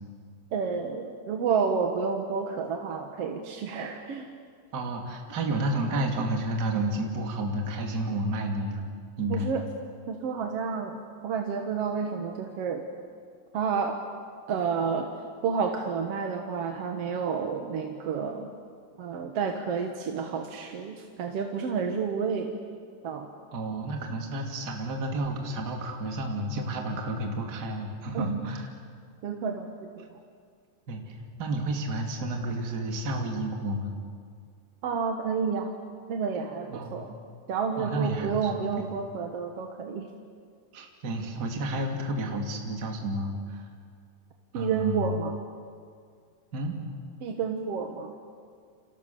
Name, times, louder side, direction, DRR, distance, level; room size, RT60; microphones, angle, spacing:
voice 1, 0.5-4.3 9.3-9.6 10.1-11.0 11.2-12.8 13.5-14.0 14.5-15.1 15.4-18.5 19.0-22.5 23.0-23.3 28.1-28.5 29.2-30.0 34.8-35.7 36.1-37.1 37.5-40.1 44.5-45.4 47.2-48.1, right 6 dB, 55° right, 4 dB, 2.0 m, -30 dB
voice 2, 4.7-8.8 9.2-9.5 23.5-28.7 30.9-33.9 36.7-37.0 37.8-38.7 40.7-43.7 44.5-45.1 46.5-46.8, right 1 dB, 30° right, 2 dB, 2.9 m, -31 dB
29.5 x 27.0 x 7.0 m, 2.1 s
omnidirectional pair, 4.0 m